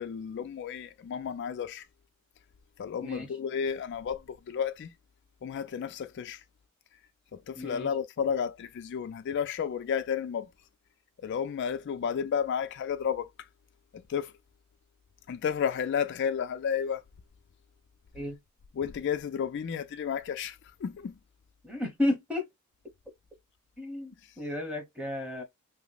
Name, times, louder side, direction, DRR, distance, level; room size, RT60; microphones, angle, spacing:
voice 1, 0.0-1.8 2.8-4.9 5.4-6.4 7.3-10.5 11.2-13.3 13.9-14.3 15.3-17.0 18.8-20.6 20.8-21.1, left 7 dB, 55° left, 0.3 m, -32 dB
voice 2, 7.5-7.9 18.1-18.4 21.6-22.5 23.8-25.4, left 1 dB, 5° right, 1.0 m, -32 dB
2.9 x 2.1 x 3.8 m
head